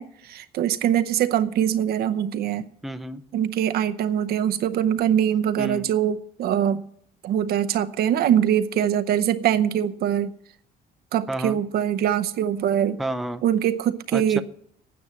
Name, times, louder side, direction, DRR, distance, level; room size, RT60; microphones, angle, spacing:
voice 1, 0.0-2.6 3.3-6.8 7.2-10.3 11.1-13.0 13.4-14.4, right 10 dB, 65° right, 0.7 m, -23 dB
voice 2, 2.8-3.2 5.6-5.9 11.3-11.6 13.0-13.4 14.1-14.4, right 1 dB, ahead, 0.6 m, -30 dB
9.4 x 9.1 x 7.4 m
cardioid pair, 110°, 17 cm